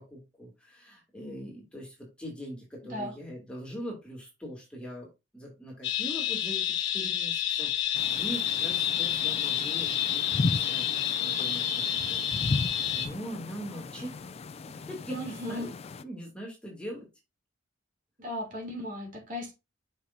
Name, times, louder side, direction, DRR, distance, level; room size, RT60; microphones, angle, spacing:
voice 1, 0.0-5.1 5.3-14.1 14.7-15.7 16.0-17.1, equal, 5° left, 2.6 m, -42 dB
voice 2, 2.8-3.1 15.1-15.7 18.2-19.5, left 1 dB, 45° right, 2.9 m, -36 dB
sound 1, 5.8-13.1, left 10 dB, 65° left, 1.3 m, -29 dB
sound 2, 7.9-16.0, left 3 dB, 30° left, 0.3 m, -36 dB
6.7 x 5.6 x 2.7 m
head